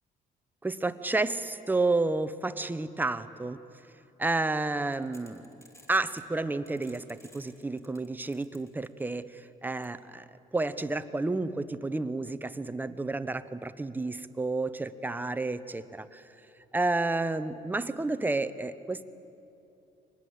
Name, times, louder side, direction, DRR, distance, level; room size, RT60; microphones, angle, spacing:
voice 1, 0.6-3.6 4.2-5.5 5.9-10.2 10.5-16.2 16.7-19.0, right 2 dB, 10° right, 12 dB, 0.8 m, -31 dB
sound 1, 4.9-6.3 6.7-9.2 9.8-9.9, left 1 dB, 15° left, 3.3 m, -56 dB
24.5 x 20.0 x 8.0 m, 2.9 s
cardioid pair, 110°, 17 cm